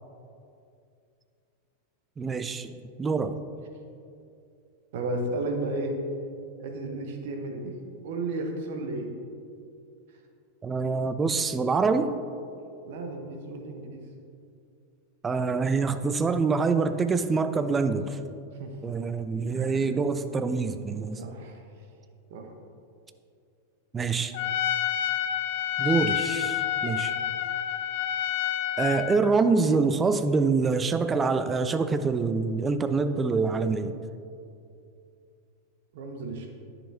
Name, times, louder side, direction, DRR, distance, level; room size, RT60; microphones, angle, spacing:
voice 1, 2.2-3.4 10.6-12.1 15.2-18.2 18.8-21.2 23.9-24.3 25.8-27.1 28.8-33.9, right 4 dB, 15° right, 10 dB, 0.4 m, -25 dB
voice 2, 4.9-6.0 6.6-9.1 12.8-14.0 18.5-18.8 19.5-19.9 21.0-21.6 22.3-22.5 35.9-36.5, right 2 dB, 55° right, 3 dB, 1.0 m, -33 dB
Trumpet, 24.3-29.2, left 11 dB, 50° left, 0.4 m, -28 dB
10.0 x 6.8 x 2.8 m, 2.5 s
figure-of-eight pair, 90°, 0 cm